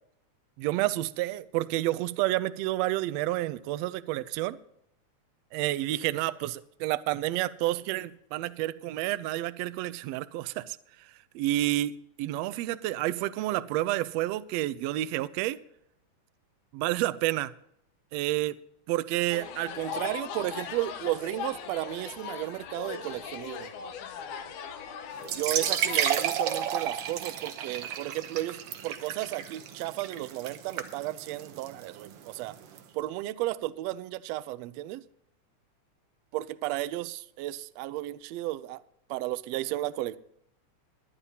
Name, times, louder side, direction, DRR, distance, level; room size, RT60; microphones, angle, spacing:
voice 1, 0.6-4.6 5.5-11.9 12.2-15.6 16.7-17.5 18.1-18.6 18.9-23.7 25.4-32.6 32.9-35.0 36.3-38.8 39.1-40.2, right 16 dB, 85° right, 1.5 m, -31 dB
sound 1, 19.3-26.2, left 7 dB, 75° left, 2.5 m, -39 dB
sound 2, 25.2-32.8, right 9 dB, 65° right, 1.5 m, -32 dB
21.0 x 9.8 x 2.8 m
omnidirectional pair, 3.5 m